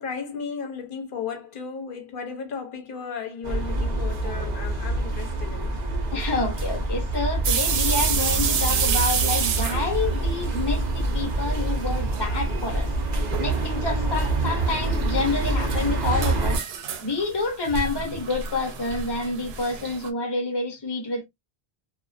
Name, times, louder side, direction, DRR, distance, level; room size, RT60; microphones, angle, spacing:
voice 1, 0.0-5.8, left 6 dB, 60° left, 0.9 m, -34 dB
sound 1, 3.4-16.6, right 2 dB, 50° right, 0.7 m, -26 dB
voice 2, 6.1-12.9 13.4-16.6 17.0-21.2, left 3 dB, 25° left, 0.8 m, -28 dB
sound 2, 7.4-11.3 11.5-12.2 12.5-12.6 13.3-13.7 14.7-20.1, right 7 dB, 85° right, 0.8 m, -29 dB
2.4 x 2.2 x 2.4 m
omnidirectional pair, 1.0 m